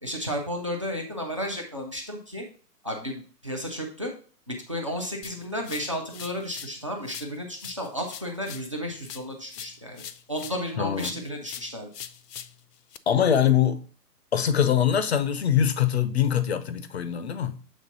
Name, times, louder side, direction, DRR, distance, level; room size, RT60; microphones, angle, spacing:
voice 1, 0.0-2.4 2.8-4.1 4.5-10.0 10.3-11.9, equal, 20° right, 0.5 m, -33 dB
sound 1, 5.2-6.8 7.0-10.7 11.0-13.0, left 9 dB, 75° left, 0.7 m, -43 dB
voice 2, 10.8-11.1 13.1-13.8 14.3-17.6, left 9 dB, 40° left, 0.6 m, -23 dB
7.4 x 3.5 x 3.9 m
hypercardioid pair, 165°, 49 cm